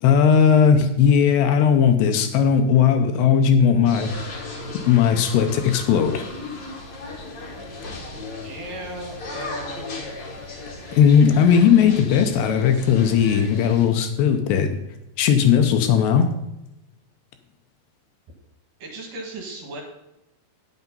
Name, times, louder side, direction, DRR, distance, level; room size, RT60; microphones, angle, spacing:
voice 1, 0.0-4.3 4.9-6.3 11.0-14.8 15.2-16.3, left 7 dB, 80° left, 7 dB, 2.7 m, -17 dB
sound 1, 3.8-13.8, left 2 dB, 40° left, 1.7 m, -36 dB
voice 2, 8.4-10.1 18.8-19.8, right 1 dB, 55° right, 1 dB, 3.2 m, -36 dB
9.9 x 8.2 x 5.4 m, 0.92 s
omnidirectional pair, 5.1 m